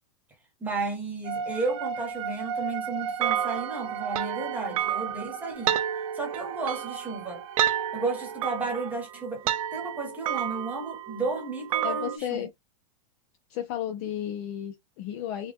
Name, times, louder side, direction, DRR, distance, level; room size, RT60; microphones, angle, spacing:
voice 1, 0.6-5.8 6.1-7.4 7.9-12.4, right 3 dB, 10° right, 1.1 m, -33 dB
sound 1, 1.2-8.9, right 6 dB, 50° right, 0.9 m, -37 dB
sound 2, 3.2-12.2, right 11 dB, 65° right, 0.5 m, -31 dB
voice 2, 11.8-12.5 13.5-15.5, left 10 dB, 30° left, 0.4 m, -33 dB
4.1 x 2.2 x 3.5 m
supercardioid pair, 170°, 19 cm